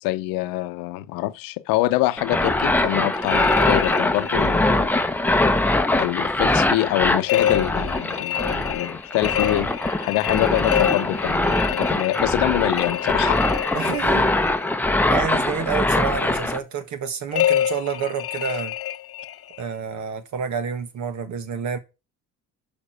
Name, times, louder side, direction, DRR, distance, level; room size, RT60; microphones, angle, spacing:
voice 1, 0.0-4.9 5.9-13.7, left 18 dB, 85° left, 0.7 m, -25 dB
sound 1, 2.2-16.6, left 2 dB, 5° left, 0.8 m, -22 dB
sound 2, 3.1-4.7 7.3-14.6 17.3-19.6, left 11 dB, 45° left, 0.8 m, -27 dB
voice 2, 13.7-14.3 15.1-18.7 19.6-21.8, right 7 dB, 60° right, 1.7 m, -29 dB
6.7 x 5.6 x 6.3 m
cardioid pair, 95°, 33 cm